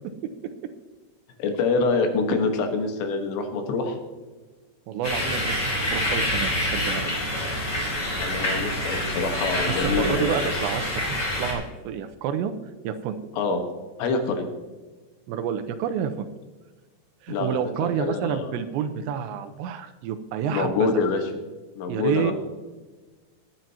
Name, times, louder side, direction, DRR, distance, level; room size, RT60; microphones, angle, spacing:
voice 1, 1.4-4.0 8.2-10.4 13.3-13.6 14.0-14.5 17.3-18.5 20.5-21.2 21.8-22.3, left 4 dB, 75° left, 5 dB, 3.5 m, -26 dB
voice 2, 4.9-5.6 5.9-7.1 9.8-12.5 12.8-13.2 15.3-16.3 17.2-20.9 21.9-22.3, right 8 dB, 85° right, 8 dB, 2.9 m, -29 dB
sound 1, 5.0-11.5, left 1 dB, 20° left, 3.1 m, -27 dB
20.0 x 9.0 x 2.9 m, 1.3 s
omnidirectional pair, 5.1 m